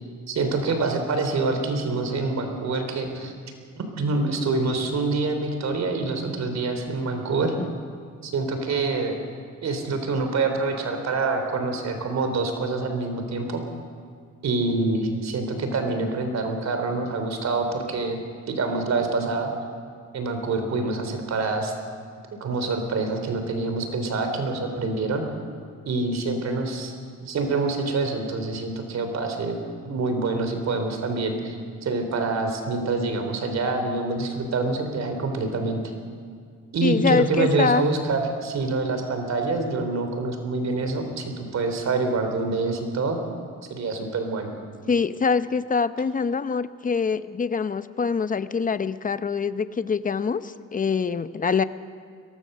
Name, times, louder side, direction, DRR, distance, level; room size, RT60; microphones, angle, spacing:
voice 1, 0.3-3.3 3.7-7.5 8.2-9.1 9.6-13.6 14.4-18.2 18.5-19.5 20.1-21.7 22.3-25.2 25.8-26.9 27.2-29.6 29.8-35.8 36.7-43.2 43.7-44.5, right 3 dB, 60° right, 6 dB, 3.4 m, -26 dB
voice 2, 36.8-37.9 44.9-51.6, left 5 dB, 25° left, 13 dB, 0.8 m, -24 dB
22.5 x 18.0 x 6.7 m, 2.2 s
cardioid pair, 90°, 30 cm